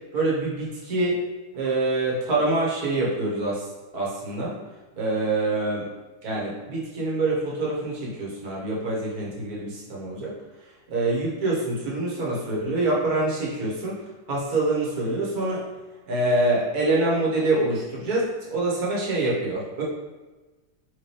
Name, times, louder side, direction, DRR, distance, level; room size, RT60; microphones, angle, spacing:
voice 1, 0.1-1.2 1.5-3.7 3.9-4.5 5.0-5.9 6.2-10.3 10.9-14.0 14.3-15.6 16.1-19.8, right 2 dB, 65° right, -5 dB, 1.7 m, -25 dB
4.6 x 3.5 x 3.3 m, 1.2 s
omnidirectional pair, 1.7 m